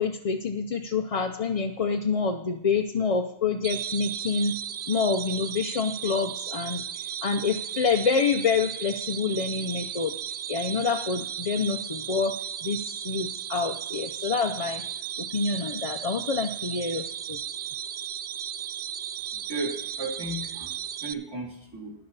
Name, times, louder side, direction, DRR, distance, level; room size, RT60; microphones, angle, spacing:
voice 1, 0.0-4.5 4.9-10.2 10.5-14.8 15.2-17.4, left 5 dB, 40° left, 4 dB, 0.6 m, -27 dB
sound 1, 3.6-21.1, right 10 dB, 65° right, 0.8 m, -35 dB
voice 2, 19.5-21.9, right 2 dB, 20° right, -1 dB, 2.9 m, -35 dB
12.5 x 10.5 x 4.0 m, 0.85 s
omnidirectional pair, 1.2 m